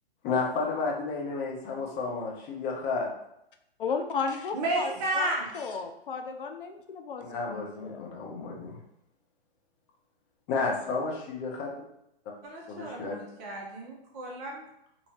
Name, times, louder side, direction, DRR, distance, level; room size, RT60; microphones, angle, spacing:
voice 1, 0.2-3.1 7.3-8.8 10.5-11.7 12.7-13.2, left 4 dB, 20° left, -1 dB, 0.7 m, -31 dB
voice 2, 3.8-4.9 5.2-5.3 5.5-8.1, left 5 dB, 60° left, 5 dB, 0.5 m, -34 dB
voice 3, 4.5-5.5 12.4-14.6, right 2 dB, 20° right, -1 dB, 0.5 m, -32 dB
4.3 x 2.7 x 2.9 m, 0.80 s
figure-of-eight pair, 115°, 31 cm